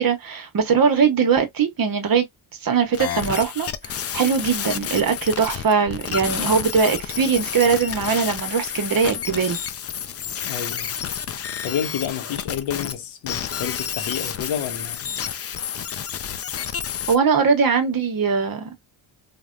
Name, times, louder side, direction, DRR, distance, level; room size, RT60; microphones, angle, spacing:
voice 1, 0.0-2.3 2.6-9.6 17.1-18.7, right 6 dB, 45° right, 1.0 m, -21 dB
sound 1, 2.9-13.0 13.3-17.2, left 8 dB, 35° left, 0.4 m, -30 dB
voice 2, 10.4-11.0 11.6-15.1, left 9 dB, 80° left, 0.8 m, -29 dB
3.3 x 2.2 x 2.5 m
cardioid pair, 75°, 48 cm